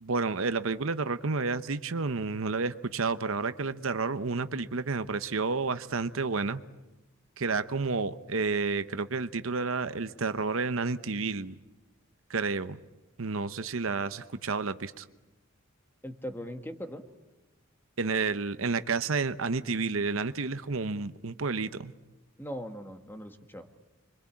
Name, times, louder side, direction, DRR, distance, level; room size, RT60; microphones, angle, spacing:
voice 1, 0.0-6.6 7.4-11.5 12.3-12.8 13.2-15.0 18.0-21.9, right 4 dB, 75° right, 0.9 m, -30 dB
voice 2, 16.0-17.0 22.4-23.8, equal, 10° left, 1.6 m, -40 dB
26.0 x 24.0 x 8.6 m
head